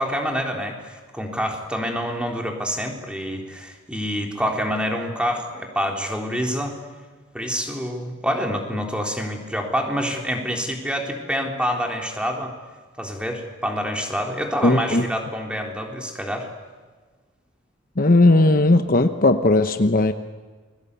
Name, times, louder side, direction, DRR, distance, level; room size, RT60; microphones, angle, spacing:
voice 1, 0.0-6.7 7.3-12.5 13.0-16.5, equal, 5° right, 1 dB, 3.7 m, -27 dB
voice 2, 14.6-15.1 18.0-20.1, left 2 dB, 45° left, 8 dB, 1.0 m, -17 dB
29.5 x 22.5 x 8.4 m, 1.4 s
head